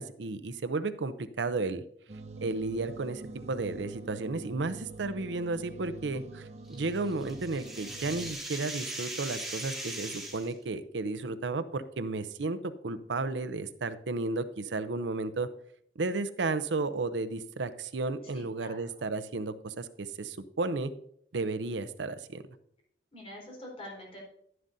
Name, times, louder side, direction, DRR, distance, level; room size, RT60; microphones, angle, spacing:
voice 1, 0.0-1.8 2.4-15.5 16.0-20.9 21.3-22.4, right 3 dB, 90° right, 12 dB, 0.6 m, -33 dB
sound 1, 2.1-8.3, right 3 dB, 40° right, 0.6 m, -45 dB
sound 2, 6.7-10.5, right 1 dB, ahead, 2.1 m, -39 dB
voice 2, 18.2-18.8 23.1-24.2, left 1 dB, 35° left, -2 dB, 4.2 m, -45 dB
11.5 x 11.0 x 2.7 m, 0.67 s
head